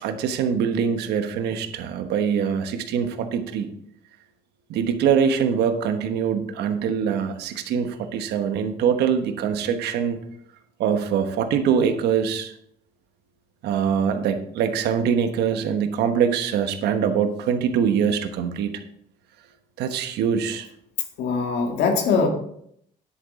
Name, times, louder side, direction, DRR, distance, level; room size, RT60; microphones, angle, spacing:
voice 1, 0.0-3.7 4.7-10.2 10.8-12.5 13.6-18.8 19.8-20.7, right 7 dB, 80° right, 8 dB, 1.2 m, -23 dB
voice 2, 21.2-22.3, left 5 dB, 80° left, 3 dB, 1.8 m, -21 dB
10.0 x 8.4 x 3.7 m, 0.70 s
cardioid pair, 110°, 17 cm